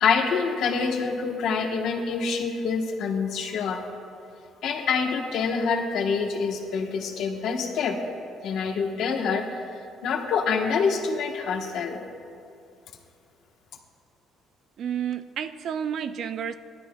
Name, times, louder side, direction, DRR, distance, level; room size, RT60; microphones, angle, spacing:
voice 1, 0.0-3.8 4.6-8.0 8.4-12.0, left 5 dB, 60° left, 2 dB, 1.1 m, -26 dB
voice 2, 14.8-16.6, right 8 dB, 45° right, 11 dB, 0.3 m, -30 dB
17.0 x 12.5 x 2.3 m, 2.4 s
cardioid pair, 170°, 0 cm